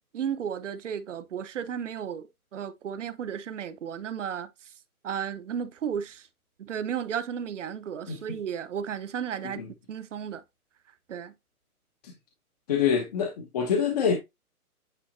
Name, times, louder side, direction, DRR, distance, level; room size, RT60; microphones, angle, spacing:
voice 1, 0.1-4.5 5.0-6.2 6.6-9.6 9.9-10.4 11.1-11.3, right 8 dB, 55° right, 0.9 m, -34 dB
voice 2, 12.7-14.2, left 7 dB, 25° left, 0.9 m, -25 dB
9.1 x 3.8 x 2.7 m
hypercardioid pair, 160°, 45 cm